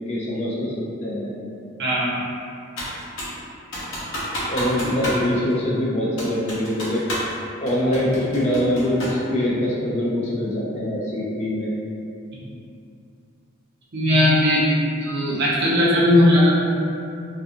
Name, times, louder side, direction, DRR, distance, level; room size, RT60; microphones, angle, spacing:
voice 1, 0.1-0.7 1.0-1.3 4.5-7.0 7.6-11.8, left 1 dB, 30° left, -5 dB, 0.3 m, -23 dB
voice 2, 1.8-2.2 12.4-12.5 13.9-14.7 15.0-16.5, left 1 dB, 50° right, -7 dB, 0.5 m, -18 dB
Computer keyboard, 2.8-3.4 3.7-5.2 5.5-5.6 6.2-7.4 7.7-9.2, equal, 75° left, 0.8 m, -29 dB
2.4 x 2.2 x 2.6 m, 2.6 s
head